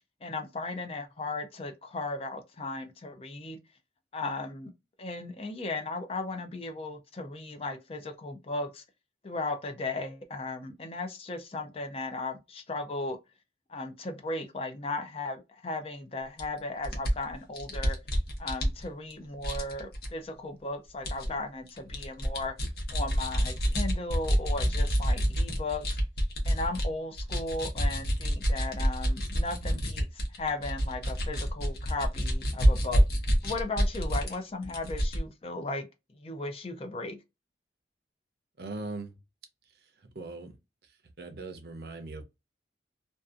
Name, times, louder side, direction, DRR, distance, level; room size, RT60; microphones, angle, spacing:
voice 1, 0.2-3.6 4.1-4.7 5.0-8.8 9.2-13.2 13.7-18.0 18.4-22.5 22.9-26.0 26.5-33.0 33.4-35.9 36.2-37.2, left 2 dB, 30° left, 0.4 m, -36 dB
sound 1, 16.4-16.5 16.8-19.1 19.4-20.1 21.0-21.3 21.7-26.9 27.1-34.3 34.6-35.2, equal, 55° left, 0.8 m, -27 dB
voice 2, 38.6-39.1 40.1-40.6 41.2-42.2, right 3 dB, 55° right, 0.6 m, -39 dB
2.6 x 2.4 x 2.4 m
head